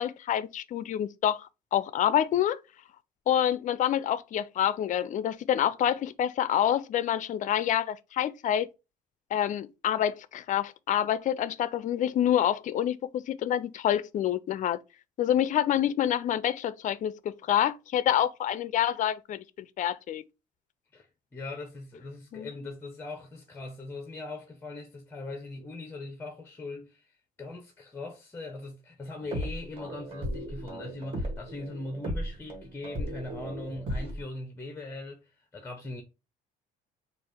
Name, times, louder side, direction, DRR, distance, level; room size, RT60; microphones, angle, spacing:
voice 1, 0.0-2.6 3.3-8.7 9.3-14.8 15.2-20.2 22.3-22.5, left 10 dB, 50° left, 0.5 m, -27 dB
voice 2, 20.9-36.0, left 2 dB, 15° left, 0.9 m, -40 dB
sound 1, 29.2-34.2, equal, 35° right, 2.0 m, -36 dB
4.1 x 2.5 x 4.8 m
cardioid pair, 110°, 17 cm